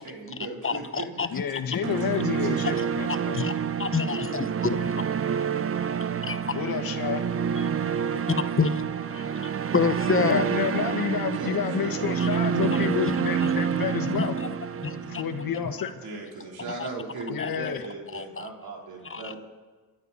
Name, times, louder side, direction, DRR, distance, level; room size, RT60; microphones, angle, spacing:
voice 1, 0.0-1.2 2.4-2.6 11.3-11.9 16.0-19.4, right 3 dB, 75° right, -1 dB, 3.8 m, -38 dB
voice 2, 0.6-1.8 3.1-5.6 6.3-6.5 7.6-10.4 12.2-12.3 12.6-13.2 13.4-13.5 14.2-14.5 14.8-15.2 15.6-15.7 16.7-16.9 17.4-17.6 18.1-18.5 19.0-19.3, left 5 dB, 35° left, 12 dB, 0.9 m, -29 dB
voice 3, 1.3-3.4 6.5-7.2 10.2-14.3 15.1-15.9 17.3-17.8, left 8 dB, 65° left, 5 dB, 1.6 m, -30 dB
sound 1, 1.8-15.9, right 7 dB, 35° right, 0.7 m, -28 dB
28.0 x 12.0 x 4.2 m, 1.3 s
cardioid pair, 65°, 38 cm